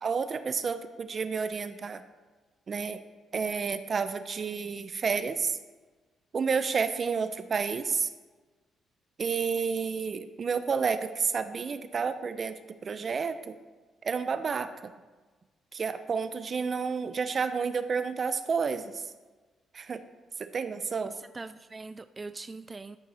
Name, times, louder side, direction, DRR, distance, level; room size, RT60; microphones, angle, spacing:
voice 1, 0.0-2.0 2.7-3.0 3.3-5.6 6.3-8.1 9.2-13.5 14.0-14.9 15.7-19.0 19.7-20.0 20.4-21.1, right 5 dB, 45° right, 11 dB, 0.8 m, -30 dB
voice 2, 21.0-23.0, right 3 dB, 25° right, 12 dB, 0.3 m, -42 dB
13.5 x 5.9 x 4.4 m, 1.3 s
cardioid pair, 90°, 0 cm